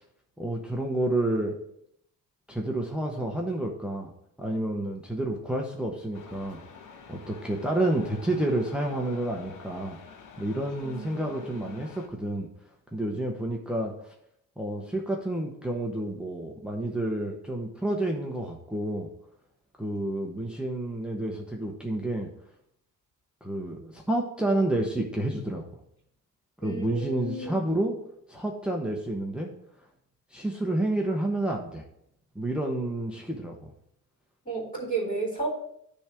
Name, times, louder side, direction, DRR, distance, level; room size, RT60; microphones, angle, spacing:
voice 1, 0.4-1.5 2.5-4.1 4.4-6.6 7.1-12.5 12.9-14.1 14.6-19.1 19.8-22.3 23.4-25.6 26.6-27.9 28.3-29.5 30.3-31.8 32.3-33.7, right 1 dB, 5° right, 0 dB, 0.8 m, -29 dB
sound 1, 6.1-12.1, left 6 dB, 65° left, 1.0 m, -48 dB
voice 2, 10.8-11.9 26.6-27.6 34.4-35.5, right 3 dB, 25° left, -7 dB, 3.2 m, -33 dB
10.0 x 3.5 x 4.8 m, 0.72 s
cardioid pair, 135°, 33 cm